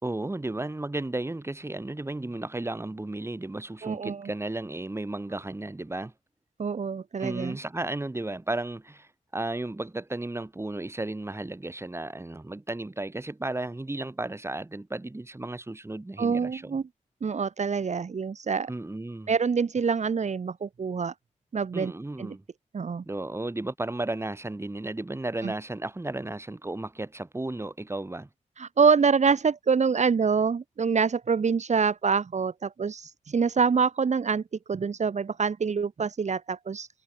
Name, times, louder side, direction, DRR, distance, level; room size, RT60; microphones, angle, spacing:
voice 1, 0.0-6.1 7.2-16.8 18.7-19.3 21.7-22.4 23.1-28.3, right 2 dB, 20° right, 3.7 m, -34 dB
voice 2, 3.8-4.3 6.6-7.6 16.2-16.8 17.2-18.7 19.3-21.1 21.5-21.9 22.2-22.4 22.7-23.0 25.4-25.5 28.6-34.4 34.7-36.9, right 5 dB, 60° right, 2.3 m, -26 dB
wide cardioid pair, 85°, 14 cm